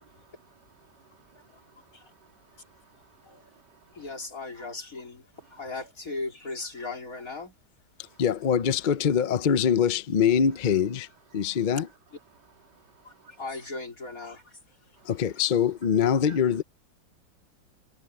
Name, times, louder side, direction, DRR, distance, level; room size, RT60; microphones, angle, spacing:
voice 1, 0.3-0.6 0.9-4.0 8.0-8.2 12.7-13.4 15.0-15.1 16.2-16.4, right 5 dB, 65° right, 3.3 m, -58 dB
voice 2, 3.9-7.6 13.0-14.8, left 3 dB, 50° left, 4.3 m, -38 dB
voice 3, 8.2-11.1 11.3-11.9 15.0-16.6, left 8 dB, 70° left, 0.4 m, -23 dB
omnidirectional pair, 1.9 m